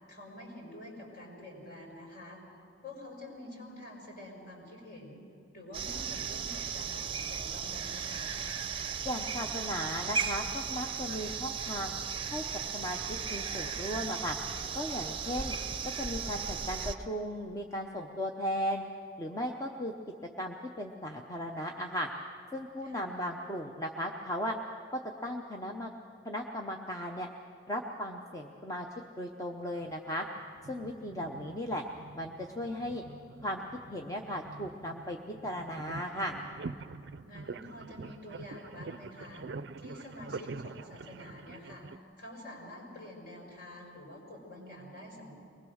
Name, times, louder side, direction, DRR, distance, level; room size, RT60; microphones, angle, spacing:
voice 1, 0.1-2.4 2.8-5.2 5.5-8.3 22.8-23.1 30.9-31.4 37.2-39.5 39.8-41.9 42.2-45.3, left 1 dB, 50° left, -1 dB, 5.3 m, -47 dB
sound 1, 5.7-17.0, right 6 dB, 25° right, 0.7 m, -36 dB
voice 2, 9.0-11.9 12.3-12.4 12.7-13.0 13.3-14.4 14.7-15.6 16.0-18.8 19.2-19.9 20.4-22.1 22.5-24.5 25.2-25.9 26.2-27.3 27.7-28.9 29.2-30.3 30.7-31.8 32.2-33.0 33.4-33.6 33.9-36.4, equal, 15° left, 1 dB, 0.8 m, -36 dB
sound 2, 29.8-42.0, right 4 dB, 60° right, 0.4 m, -46 dB
23.0 x 20.0 x 6.4 m, 2.5 s
head